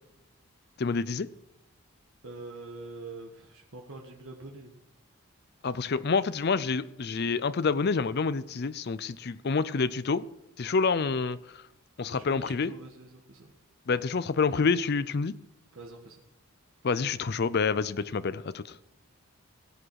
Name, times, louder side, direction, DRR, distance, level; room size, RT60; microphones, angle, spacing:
voice 1, 0.8-1.3 5.6-10.2 10.6-11.4 12.0-12.7 13.9-15.3 16.8-18.6, left 4 dB, 50° left, 15 dB, 0.5 m, -27 dB
voice 2, 2.2-4.8 12.1-13.5 15.7-16.2, right 3 dB, 60° right, 1 dB, 1.5 m, -45 dB
16.0 x 8.7 x 4.8 m, 0.89 s
head